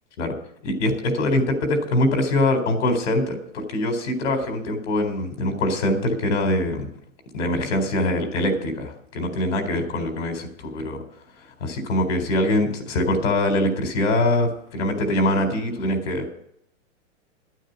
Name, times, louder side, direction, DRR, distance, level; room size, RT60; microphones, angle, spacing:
voice 1, 0.6-6.9 7.3-11.0 11.6-16.3, left 1 dB, 80° left, 6 dB, 4.0 m, -23 dB
10.5 x 9.2 x 8.2 m, 0.71 s
supercardioid pair, 155°, 37 cm